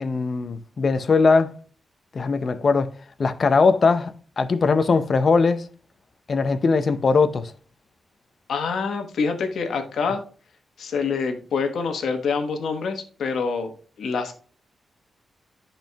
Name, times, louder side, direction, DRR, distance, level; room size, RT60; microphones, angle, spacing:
voice 1, 0.0-1.5 2.1-2.9 3.2-5.7 6.3-7.5, left 4 dB, 40° left, 0.5 m, -20 dB
voice 2, 8.5-10.2 10.8-14.3, left 5 dB, 80° left, 1.1 m, -26 dB
13.0 x 4.4 x 2.2 m
wide cardioid pair, 155°, 0 cm